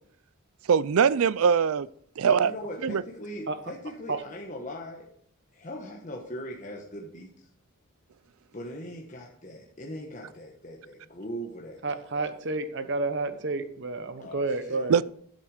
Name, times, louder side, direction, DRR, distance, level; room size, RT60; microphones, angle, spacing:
voice 1, 0.7-1.9 2.2-2.5 2.8-3.0 14.9-15.0, right 6 dB, 80° right, 0.4 m, -21 dB
voice 2, 2.2-5.1 5.5-7.5 8.5-12.3 14.2-14.9, equal, 35° left, 1.2 m, -40 dB
voice 3, 11.8-14.9, right 3 dB, 55° right, 1.0 m, -30 dB
11.0 x 7.9 x 4.9 m
head